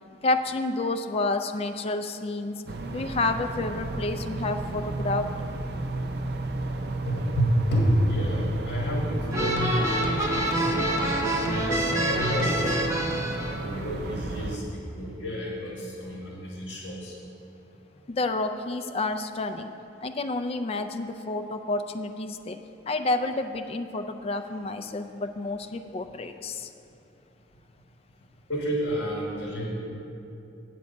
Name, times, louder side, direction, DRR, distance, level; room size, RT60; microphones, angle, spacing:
voice 1, 0.2-2.6 2.9-5.4 18.1-19.7 20.0-22.6 22.9-26.7, left 2 dB, 35° left, 8 dB, 0.4 m, -29 dB
sound 1, 2.7-14.6, right 2 dB, 65° right, 0.5 m, -34 dB
voice 2, 7.1-11.5 12.0-13.0 13.6-17.1 28.5-29.7, equal, 65° left, -3 dB, 1.3 m, -29 dB
sound 2, 9.3-13.6, right 1 dB, 15° right, 0.8 m, -26 dB
8.3 x 7.7 x 5.2 m, 2.7 s
head